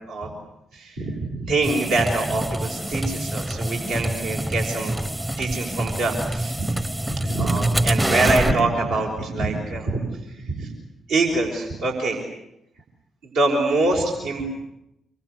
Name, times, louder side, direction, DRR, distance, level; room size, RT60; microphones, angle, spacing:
voice 1, 0.7-5.0 5.4-6.7 7.1-10.0 10.4-10.7 11.1-12.2 13.2-14.5, right 2 dB, 75° right, -2 dB, 5.7 m, -24 dB
sound 1, 1.6-8.6, right 1 dB, 15° right, 1.0 m, -26 dB
27.5 x 24.0 x 8.4 m, 0.83 s
hypercardioid pair, 40°, 0 cm